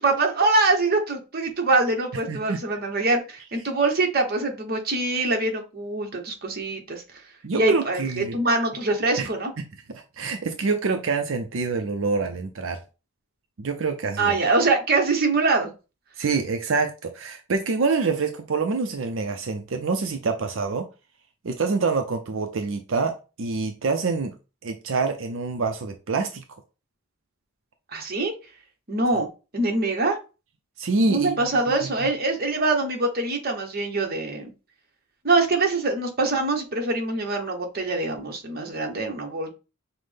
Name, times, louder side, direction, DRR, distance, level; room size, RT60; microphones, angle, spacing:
voice 1, 0.0-7.0 7.5-9.5 14.2-15.7 27.9-28.3 28.9-29.3 29.5-30.2 31.1-34.5 35.2-39.5, right 3 dB, 45° right, 3 dB, 1.0 m, -24 dB
voice 2, 2.3-2.6 7.4-8.4 9.2-9.3 9.9-12.8 13.6-14.3 16.2-20.9 21.4-24.3 24.6-26.4 30.8-31.6 31.8-32.1, right 4 dB, 65° right, 5 dB, 0.5 m, -26 dB
5.7 x 2.1 x 3.3 m, 0.31 s
head